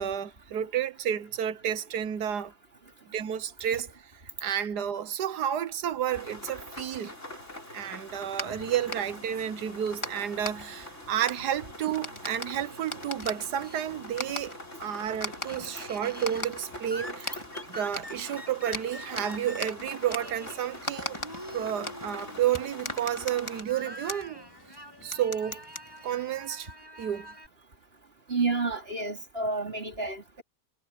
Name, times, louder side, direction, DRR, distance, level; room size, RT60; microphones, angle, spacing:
voice 1, 0.0-2.5 3.1-4.1 4.4-7.1 7.7-14.5 14.8-17.4 17.7-21.2 21.5-24.4 25.0-25.7 26.0-26.7 27.0-27.3, right 10 dB, 85° right, 1.5 m, -31 dB
Gentle Rain, 6.1-23.6, left 1 dB, 45° left, 8.2 m, -44 dB
sound 1, 8.1-26.5, left 1 dB, 20° left, 2.2 m, -41 dB
Laughter, 12.1-14.2 14.6-27.5, equal, 15° right, 7.6 m, -46 dB
voice 2, 28.3-30.4, right 3 dB, 35° right, 4.4 m, -30 dB
omnidirectional pair, 1.7 m